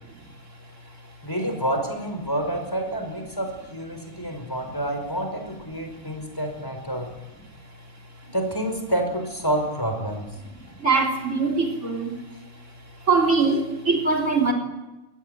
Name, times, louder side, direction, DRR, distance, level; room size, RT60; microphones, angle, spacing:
voice 1, 1.2-7.1 8.2-10.3, right 1 dB, 15° left, 4 dB, 5.1 m, -28 dB
voice 2, 10.8-12.2 13.1-14.5, right 4 dB, 65° right, 1 dB, 4.1 m, -22 dB
24.5 x 18.0 x 9.2 m, 1.0 s
omnidirectional pair, 1.4 m